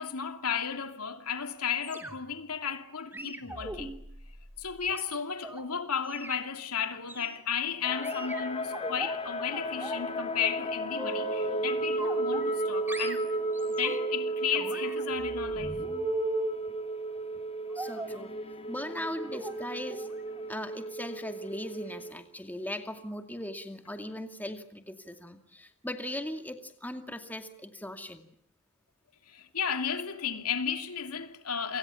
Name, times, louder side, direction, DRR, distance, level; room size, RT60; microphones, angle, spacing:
voice 1, 0.0-3.9 4.6-13.3 13.7-15.8 29.3-31.8, left 7 dB, 85° left, 2.7 m, -34 dB
sound 1, 1.8-2.4 3.1-5.6 6.1-6.4 7.1-7.4 8.0-9.1 9.5-10.1 10.4-11.6 12.0-12.6 12.9-14.2 14.5-16.6 17.8-18.2 18.9-19.1 19.3-19.6 19.9-20.1 20.4-20.5, right 1 dB, 10° right, 2.9 m, -39 dB
sound 2, 7.8-22.1, right 1 dB, 25° left, 2.4 m, -34 dB
voice 2, 17.7-18.4 18.7-20.1 20.5-28.3, left 1 dB, 10° left, 2.3 m, -39 dB
29.0 x 26.5 x 7.1 m
head